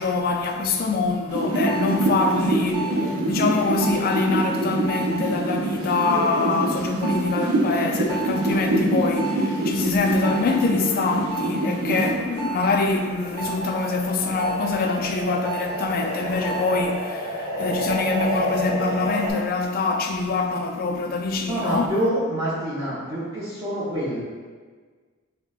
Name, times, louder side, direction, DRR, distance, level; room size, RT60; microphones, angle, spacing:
voice 1, 0.0-22.0, left 3 dB, 45° left, 0.3 m, -24 dB
sound 1, 1.3-12.6 12.9-19.3, right 1 dB, 85° right, 0.6 m, -26 dB
voice 2, 21.4-24.2, right 1 dB, 15° right, 0.7 m, -26 dB
5.6 x 2.1 x 2.3 m
head